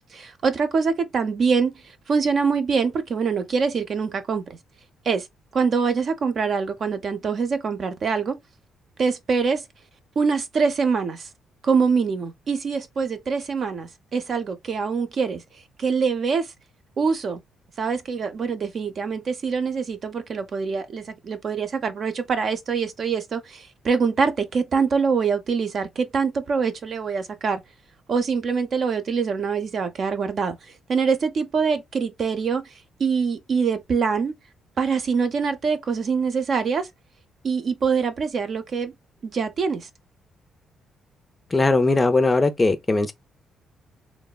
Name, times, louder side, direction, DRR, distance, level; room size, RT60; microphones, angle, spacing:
voice 1, 0.1-1.7 2.1-4.4 5.0-5.3 5.5-8.4 9.0-9.6 10.2-11.3 11.6-15.4 15.8-16.5 17.0-17.4 17.8-27.6 28.1-30.6 30.9-32.6 33.0-34.3 34.8-36.9 37.4-38.9 39.2-39.9, right 5 dB, 50° right, 0.6 m, -24 dB
voice 2, 41.5-43.1, left 3 dB, 20° left, 0.5 m, -19 dB
3.1 x 2.0 x 2.3 m
cardioid pair, 90°, 0 cm